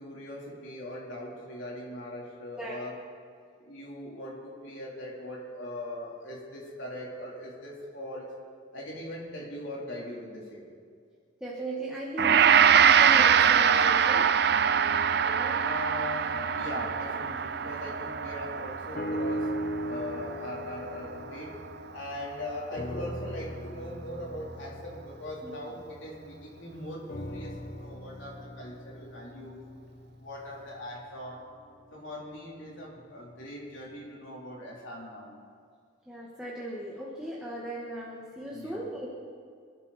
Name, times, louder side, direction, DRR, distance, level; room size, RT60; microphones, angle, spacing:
voice 1, 0.0-3.0 3.6-8.3 8.7-10.7 15.5-19.5 19.8-21.5 21.9-29.6 30.2-31.5 31.9-35.3 38.5-38.8, left 1 dB, 70° left, -4 dB, 4.0 m, -40 dB
voice 2, 11.4-15.7 25.4-25.5 36.1-39.1, right 1 dB, 5° right, -5 dB, 1.6 m, -38 dB
Gong, 12.2-21.4, right 7 dB, 50° right, 0.5 m, -24 dB
sound 1, 18.9-22.3 22.7-26.4 27.1-31.3 32.0-32.1, equal, 40° left, 0.7 m, -39 dB
25.5 x 12.5 x 4.4 m, 2.2 s
head